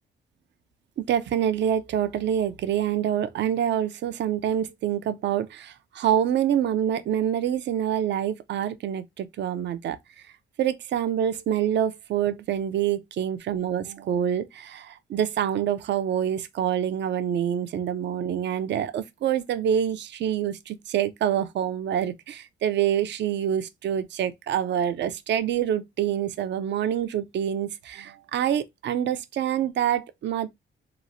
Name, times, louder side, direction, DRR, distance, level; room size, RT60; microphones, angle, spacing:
voice 1, 1.0-10.0 10.6-30.5, right 9 dB, 60° right, 0.4 m, -26 dB
2.9 x 2.0 x 2.6 m
cardioid pair, 75°, 20 cm